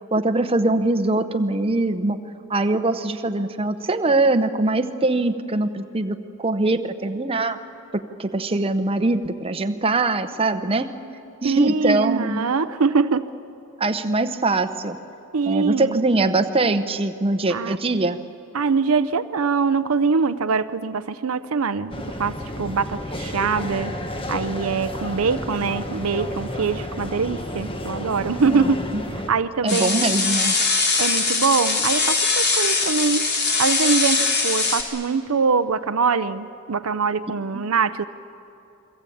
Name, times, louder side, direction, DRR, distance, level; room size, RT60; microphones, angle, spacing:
voice 1, 0.1-2.2 2.5-7.6 7.9-10.9 11.4-12.5 13.8-15.0 15.5-18.2 28.9-29.0 29.6-30.6 37.5-37.6, right 2 dB, 25° right, 7 dB, 0.9 m, -22 dB
voice 2, 11.4-13.3 15.3-16.0 17.5-17.8 18.5-23.9 24.3-28.8 29.3-30.3 31.0-33.3 33.6-38.0, right 5 dB, 75° right, 11 dB, 0.6 m, -23 dB
sound 1, 21.9-29.3, left 1 dB, 25° left, 1.4 m, -31 dB
sound 2, 29.7-34.8, left 4 dB, 50° left, 3.0 m, -21 dB
29.0 x 22.0 x 8.6 m, 2.9 s
head